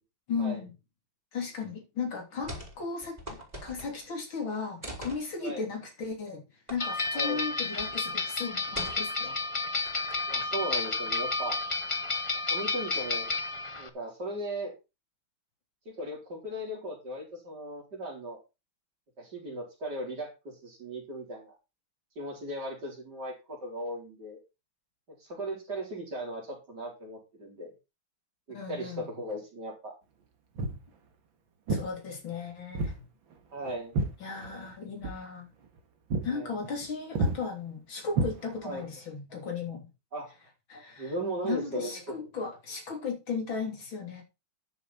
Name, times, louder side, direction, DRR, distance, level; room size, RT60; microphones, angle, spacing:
voice 1, 0.3-0.7 1.3-6.4 6.7-9.4 28.5-29.1 31.7-33.0 34.2-35.5 36.2-39.9 40.7-41.1 41.4-44.2, left 5 dB, 85° left, 3.9 m, -36 dB
sound 1, 2.4-2.8 3.0-4.1 4.8-5.2 6.7-6.8 7.1-7.3 7.8-8.0 8.7-9.3 9.9-10.4, equal, 20° right, 3.6 m, -42 dB
sound 2, 6.8-13.9, left 3 dB, 30° left, 0.5 m, -31 dB
voice 2, 10.3-11.6 12.5-13.4 13.8-14.7 15.9-18.4 19.2-21.5 22.2-24.4 25.2-27.7 28.5-29.9 33.5-34.0 36.3-36.5 38.6-38.9 40.1-40.3 41.0-41.9, right 1 dB, 55° right, 4.7 m, -37 dB
Walk footsteps, 30.6-30.9 31.7-31.9 32.7-33.0 33.3-34.7 35.0-35.2 35.6-35.8 36.1-36.3 36.6-36.9 37.2-37.4 38.1-38.8, right 2 dB, 80° right, 2.4 m, -30 dB
11.5 x 7.1 x 4.3 m
omnidirectional pair, 2.1 m